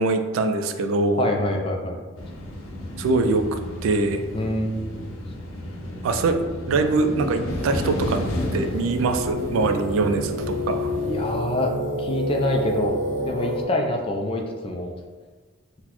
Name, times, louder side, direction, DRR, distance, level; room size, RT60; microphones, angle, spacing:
voice 1, 0.0-1.3 3.0-3.4 3.8-4.2 6.0-6.4 6.7-8.2 8.5-10.9, right 3 dB, 80° right, 7 dB, 0.3 m, -23 dB
voice 2, 1.2-2.0 4.3-5.1 11.0-11.7 12.0-14.9, left 1 dB, 25° left, 2 dB, 0.3 m, -26 dB
sound 1, 2.2-11.3, left 1 dB, 90° left, 0.6 m, -32 dB
sound 2, 7.5-13.6, equal, 35° right, 0.6 m, -29 dB
4.0 x 2.1 x 2.9 m, 1.4 s
head